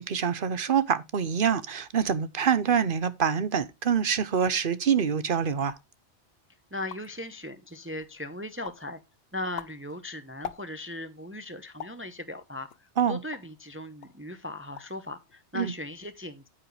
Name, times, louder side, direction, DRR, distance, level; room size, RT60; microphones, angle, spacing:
voice 1, 0.0-5.7 13.0-13.2 15.5-15.7, right 7 dB, 55° right, 1.0 m, -25 dB
sound 1, 5.6-6.0 6.5-6.6 6.7-7.3 7.8-8.2 8.6-8.9 9.3-11.0 11.8-12.1 12.7-13.6 14.0-14.2 14.5-15.0 15.3-15.8, left 8 dB, 65° left, 1.0 m, -43 dB
voice 2, 6.7-9.0 9.3-16.5, left 1 dB, 15° right, 0.8 m, -38 dB
9.2 x 8.7 x 3.2 m
omnidirectional pair, 1.1 m